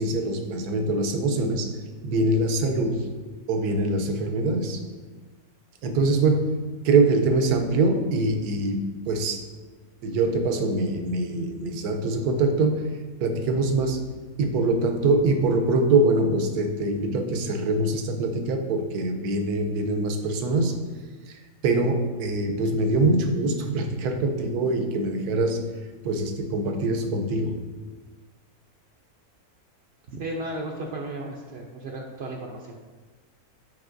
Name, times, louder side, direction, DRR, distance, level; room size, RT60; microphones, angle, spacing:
voice 1, 0.0-1.7 2.0-3.1 3.5-4.8 5.8-6.6 6.8-9.4 10.0-12.9 13.2-14.0 14.4-20.7 21.3-25.6 26.0-27.6, right 2 dB, 80° right, 5 dB, 1.2 m, -24 dB
voice 2, 30.1-32.8, right 1 dB, 60° right, -1 dB, 0.7 m, -34 dB
9.4 x 4.7 x 2.6 m, 1.3 s
omnidirectional pair, 1.6 m